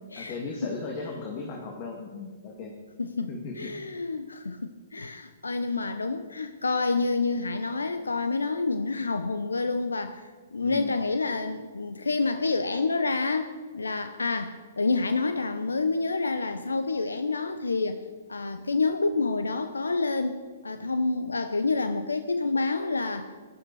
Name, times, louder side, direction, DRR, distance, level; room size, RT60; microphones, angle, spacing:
voice 1, 0.2-2.7 3.3-3.7 10.6-10.9, left 4 dB, 40° left, 0 dB, 2.2 m, -36 dB
voice 2, 3.0-18.0 18.3-23.3, left 3 dB, 85° left, 9 dB, 0.8 m, -28 dB
17.0 x 11.5 x 4.8 m, 1.5 s
figure-of-eight pair, 120°, 0 cm